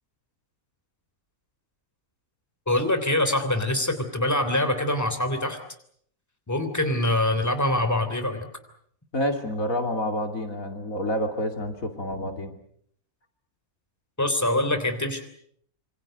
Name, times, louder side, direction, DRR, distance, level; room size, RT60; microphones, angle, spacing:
voice 1, 2.7-5.6 6.5-8.5 14.2-15.2, left 1 dB, 10° left, 8 dB, 3.3 m, -24 dB
voice 2, 9.1-12.5, left 1 dB, 65° left, 5 dB, 3.0 m, -28 dB
27.0 x 26.0 x 6.6 m, 0.65 s
omnidirectional pair, 1.5 m